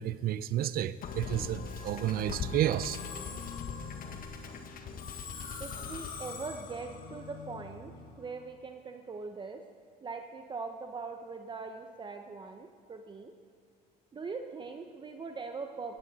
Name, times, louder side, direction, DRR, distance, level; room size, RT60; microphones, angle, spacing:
voice 1, 0.0-3.0, right 12 dB, 60° right, 0.6 m, -31 dB
Musical instrument, 1.0-8.3, left 5 dB, 55° left, 1.6 m, -41 dB
voice 2, 5.6-9.6 10.0-13.3 14.1-16.0, right 4 dB, 30° right, 1.0 m, -41 dB
17.0 x 14.5 x 4.2 m
cardioid pair, 110°, 17 cm